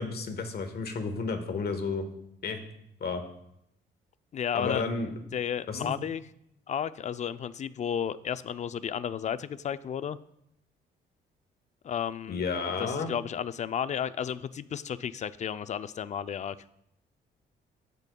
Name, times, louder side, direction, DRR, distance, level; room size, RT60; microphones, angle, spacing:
voice 1, 0.0-2.0 2.4-2.6 3.0-3.2 4.5-5.1 5.7-5.9 12.3-13.1, left 4 dB, 55° left, 6 dB, 1.2 m, -31 dB
voice 2, 4.3-4.8 5.3-6.2 6.7-10.2 11.8-12.4 12.8-16.6, left 8 dB, 35° left, 14 dB, 0.4 m, -33 dB
14.0 x 5.2 x 2.3 m, 0.76 s
cardioid pair, 90°, 20 cm